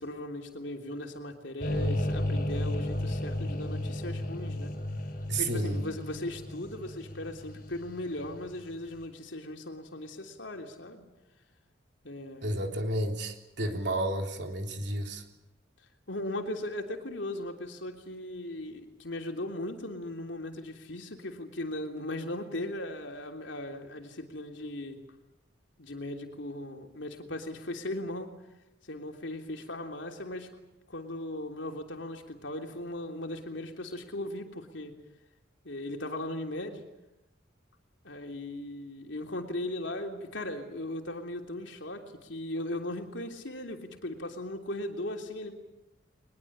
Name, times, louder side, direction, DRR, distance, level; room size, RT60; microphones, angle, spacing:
voice 1, 0.0-4.7 5.4-11.1 12.0-12.7 16.1-25.0 25.8-28.3 28.8-30.5 30.9-35.0 35.6-36.8 38.0-45.5, left 1 dB, 70° left, 3 dB, 3.3 m, -38 dB
sound 1, 1.6-8.7, left 1 dB, 45° left, 5.5 m, -33 dB
voice 2, 5.3-5.9 12.4-15.2, right 1 dB, 60° right, 3 dB, 3.5 m, -31 dB
22.5 x 21.5 x 8.8 m, 0.96 s
head